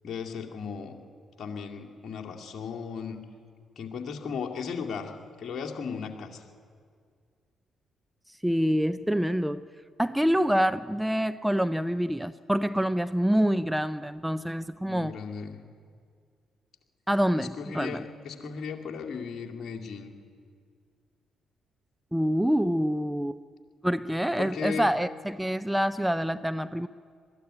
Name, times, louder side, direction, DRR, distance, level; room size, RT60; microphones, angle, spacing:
voice 1, 0.0-1.0 1.4-3.2 3.8-5.1 5.4-6.4 14.9-15.6 17.4-20.1 24.4-24.9, left 6 dB, 50° left, 1 dB, 2.4 m, -36 dB
voice 2, 8.4-9.7 10.0-15.2 17.1-18.0 22.1-23.4 23.8-26.9, equal, 5° right, 12 dB, 0.6 m, -26 dB
21.5 x 14.0 x 9.9 m, 2.1 s
hypercardioid pair, 45°, 0 cm